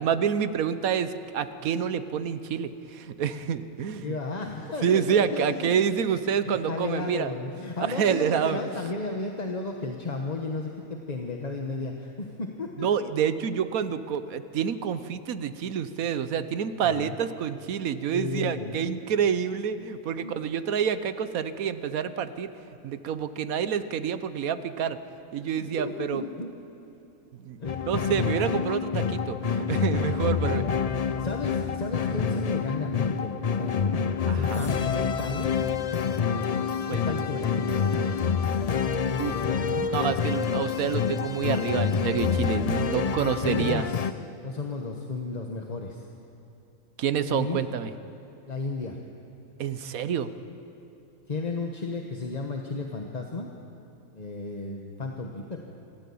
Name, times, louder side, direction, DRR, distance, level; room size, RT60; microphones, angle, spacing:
voice 1, 0.0-4.2 4.8-7.3 7.8-8.6 12.8-25.0 25.3-26.2 27.4-27.6 27.9-30.7 34.3-34.7 36.9-37.4 39.2-39.3 39.9-43.8 47.0-47.9 49.6-50.3, right 8 dB, 80° right, 12 dB, 1.3 m, -28 dB
voice 2, 4.0-5.8 6.1-12.9 16.8-17.1 18.1-19.0 20.2-20.4 25.5-26.5 27.6-27.8 30.4-34.0 34.3-35.6 36.9-37.9 39.0-39.9 43.3-44.0 44.4-46.1 47.3-47.6 48.5-49.0 51.3-53.5 54.1-55.6, left 3 dB, 30° left, 2 dB, 1.2 m, -34 dB
sound 1, 27.6-44.1, left 6 dB, 75° left, 0.3 m, -27 dB
27.0 x 14.0 x 8.6 m, 2.8 s
omnidirectional pair, 1.5 m